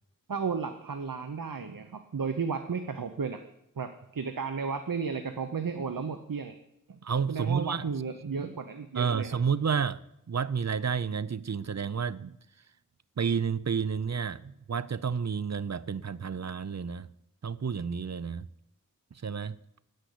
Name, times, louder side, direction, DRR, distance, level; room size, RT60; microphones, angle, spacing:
voice 1, 0.3-3.4 3.8-6.6 6.9-7.0 7.3-9.4, right 5 dB, 85° right, 0.8 m, -33 dB
voice 2, 7.0-7.8 9.0-10.0 10.3-12.3 13.2-17.1 17.4-18.5 19.2-19.6, right 6 dB, 55° right, 0.6 m, -30 dB
10.0 x 8.2 x 9.9 m
wide cardioid pair, 50°, 33 cm